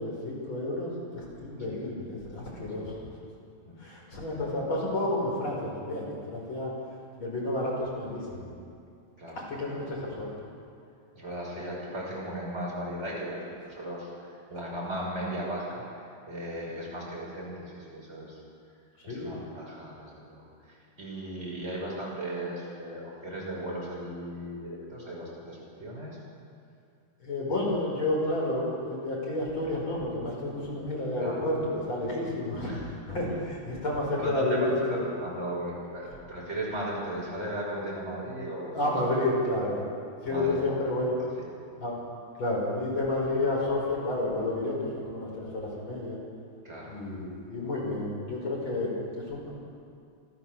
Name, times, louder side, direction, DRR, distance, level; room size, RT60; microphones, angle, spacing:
voice 1, 0.0-2.9 3.8-6.7 7.2-8.5 9.4-10.3 19.1-19.4 27.2-32.7 33.1-35.1 38.7-39.8 40.2-41.1 41.8-42.0 42.4-46.2 46.9-49.5, left 1 dB, 90° left, -4 dB, 6.7 m, -30 dB
voice 2, 11.1-15.9 16.3-18.4 19.0-26.2 31.2-31.4 32.6-32.9 34.2-39.0 39.6-39.8 40.3-40.8 41.4-41.5 46.6-47.0, right 1 dB, 35° right, -5 dB, 6.6 m, -37 dB
27.5 x 13.5 x 7.3 m, 2.4 s
omnidirectional pair, 2.2 m